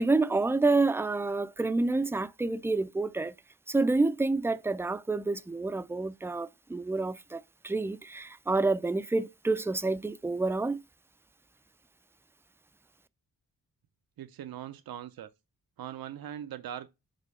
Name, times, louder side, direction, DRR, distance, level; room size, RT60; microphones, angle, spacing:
voice 1, 0.0-3.3 3.7-10.8, right 3 dB, 5° right, 0.3 m, -28 dB
voice 2, 14.2-15.3 15.8-16.9, right 10 dB, 75° right, 0.6 m, -40 dB
5.3 x 4.5 x 5.3 m
wide cardioid pair, 90°, 36 cm